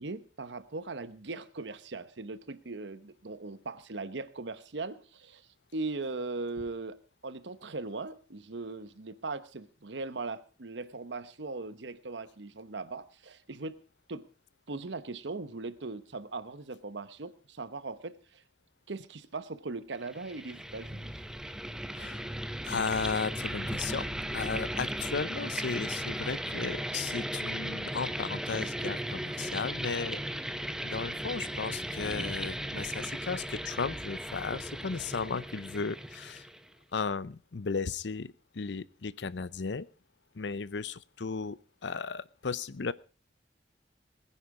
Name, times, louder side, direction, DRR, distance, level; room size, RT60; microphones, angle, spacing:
voice 1, 0.0-7.0 7.2-13.7 14.1-14.3 14.7-18.4 18.9-21.1, right 3 dB, 80° right, 14 dB, 1.0 m, -39 dB
sound 1, 20.0-36.7, right 1 dB, 5° right, 0.8 m, -36 dB
voice 2, 21.9-22.2 22.6-30.2 30.8-36.5 36.9-39.9 40.3-41.6 41.8-42.9, left 5 dB, 80° left, 19 dB, 0.6 m, -35 dB
20.0 x 10.0 x 4.8 m, 0.37 s
head